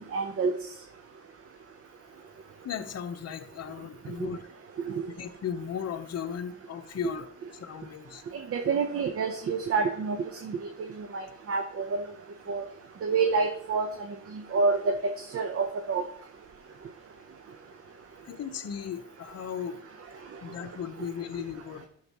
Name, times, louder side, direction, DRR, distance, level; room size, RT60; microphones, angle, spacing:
voice 1, 0.1-0.5 4.2-4.3 4.9-5.0 8.3-10.6 11.0-12.0 12.5-12.7 13.0-13.9 14.5-16.0, right 4 dB, 50° right, 6 dB, 0.9 m, -28 dB
voice 2, 2.6-4.5 5.1-8.2 18.2-19.8 20.4-21.9, left 8 dB, 55° left, 7 dB, 0.9 m, -36 dB
11.5 x 6.5 x 3.0 m, 0.65 s
cardioid pair, 90°, 30 cm